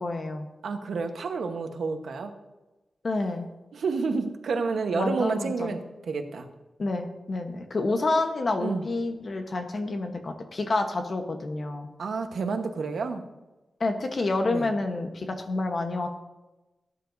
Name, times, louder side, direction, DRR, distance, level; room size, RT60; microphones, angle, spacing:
voice 1, 0.0-0.5 3.0-3.5 4.9-5.8 6.8-11.9 13.8-16.1, left 2 dB, 40° left, 5 dB, 1.1 m, -28 dB
voice 2, 0.6-2.3 3.7-6.5 8.6-8.9 12.0-13.2 14.5-14.7, right 4 dB, 80° right, 5 dB, 1.1 m, -29 dB
17.5 x 9.9 x 2.7 m, 1.1 s
wide cardioid pair, 170°, 0 cm